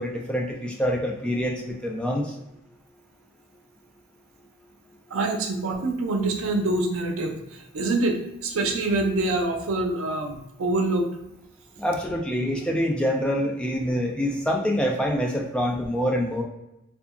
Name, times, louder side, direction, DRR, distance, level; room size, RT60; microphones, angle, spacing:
voice 1, 0.0-2.4 11.8-16.4, equal, 5° left, 0 dB, 0.3 m, -26 dB
voice 2, 5.1-11.1, right 2 dB, 85° right, 4 dB, 0.5 m, -25 dB
2.7 x 2.4 x 2.4 m, 0.90 s
head